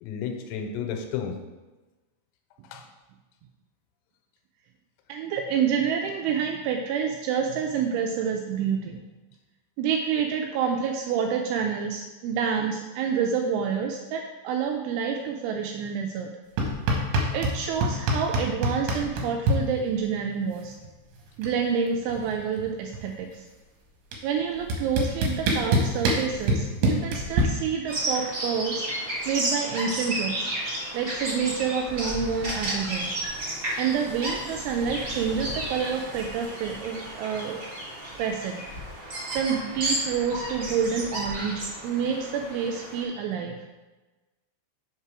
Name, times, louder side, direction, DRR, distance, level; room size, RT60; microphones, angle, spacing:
voice 1, 0.0-1.4 2.7-2.8, left 7 dB, 90° left, 4 dB, 3.3 m, -32 dB
voice 2, 5.1-9.0 9.8-16.3 17.3-20.7 21.4-23.4 24.2-28.8 29.3-30.5 30.9-33.2 33.8-37.6 38.2-38.6 39.3-43.5, right 7 dB, 85° right, 2 dB, 2.8 m, -28 dB
sound 1, 16.6-17.6 17.8-19.6 20.8-20.9 21.2-21.6 21.9-23.2 24.1-24.2 24.7-27.4, right 1 dB, 70° right, 2.9 m, -24 dB
Bird vocalization bird call bird song, 27.9-43.0, right 1 dB, 50° right, 1.4 m, -33 dB
6.7 x 5.6 x 4.7 m, 1.2 s
omnidirectional pair, 5.9 m